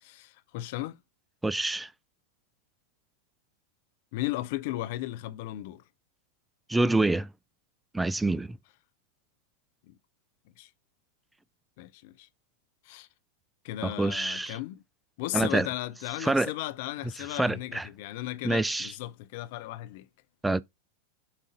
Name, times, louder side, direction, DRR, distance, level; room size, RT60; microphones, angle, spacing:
voice 1, 0.0-1.0 4.1-5.8 9.9-10.0 10.6-10.7 11.8-12.3 12.9-13.1 13.6-14.8 15.2-20.1, left 16 dB, 50° left, 0.6 m, -36 dB
voice 2, 1.4-1.9 6.7-7.3 7.9-8.6 13.8-14.6 15.3-15.7 16.2-16.5 17.2-17.9 18.4-18.9 20.4-20.6, right 2 dB, 5° right, 0.3 m, -26 dB
7.3 x 2.7 x 4.9 m
figure-of-eight pair, 90°, 0 cm